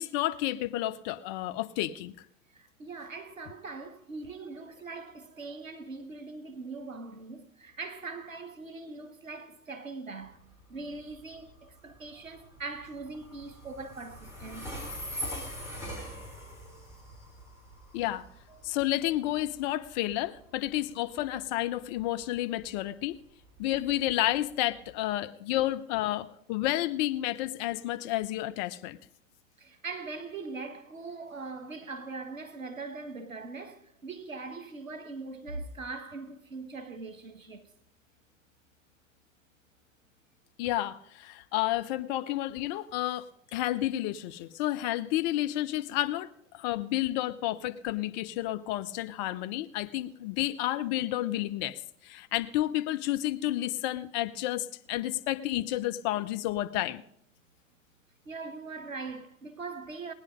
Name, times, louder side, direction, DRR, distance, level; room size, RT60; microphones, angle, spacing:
voice 1, 0.0-2.2 17.9-18.3 18.6-23.2 23.6-29.0 40.6-57.0, left 15 dB, 35° left, 0.6 m, -31 dB
voice 2, 2.5-14.7 18.5-18.8 29.6-37.7 58.2-60.1, right 3 dB, 80° right, 1.4 m, -41 dB
Train, 10.2-25.0, equal, 5° right, 3.3 m, -44 dB
18.5 x 9.7 x 5.1 m
figure-of-eight pair, 90°, 40 cm